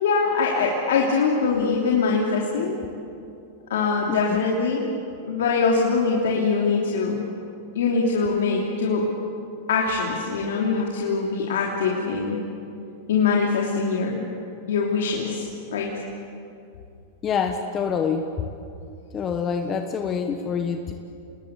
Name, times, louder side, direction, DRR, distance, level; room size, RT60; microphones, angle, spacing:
voice 1, 0.0-2.8 3.7-4.9 5.2-7.2 7.7-9.1 9.7-12.4 13.1-14.3 14.7-15.9, left 4 dB, 85° left, -2 dB, 3.0 m, -23 dB
voice 2, 4.1-4.4 17.2-18.3 19.1-20.9, left 6 dB, 25° left, 6 dB, 1.3 m, -26 dB
28.0 x 20.0 x 8.4 m, 2.6 s
supercardioid pair, 135°, 0 cm